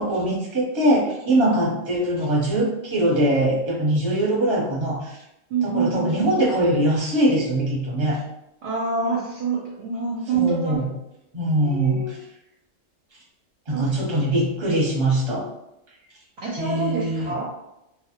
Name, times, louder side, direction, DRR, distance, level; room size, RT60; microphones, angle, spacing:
voice 1, 0.0-5.2 5.6-8.2 10.3-10.9 11.3-12.2 13.7-15.4 16.6-17.3, right 1 dB, 25° right, -5 dB, 0.7 m, -22 dB
voice 2, 1.3-1.7 5.5-6.4 8.6-10.8 11.6-12.2 13.7-14.0 16.4-17.5, right 4 dB, 65° right, -4 dB, 0.8 m, -27 dB
2.1 x 2.1 x 2.8 m, 0.86 s
omnidirectional pair, 1.3 m